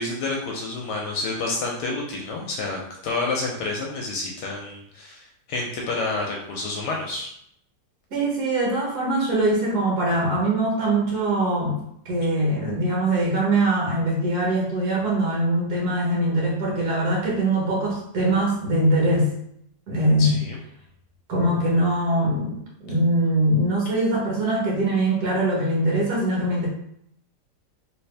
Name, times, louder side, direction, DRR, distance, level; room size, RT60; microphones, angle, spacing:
voice 1, 0.0-7.3 20.2-20.6, left 3 dB, 75° left, -1 dB, 1.1 m, -29 dB
voice 2, 8.1-11.8 12.1-19.3 19.9-20.4 21.3-26.7, right 1 dB, 60° right, -3 dB, 1.7 m, -22 dB
3.4 x 2.9 x 3.3 m, 0.72 s
omnidirectional pair, 2.0 m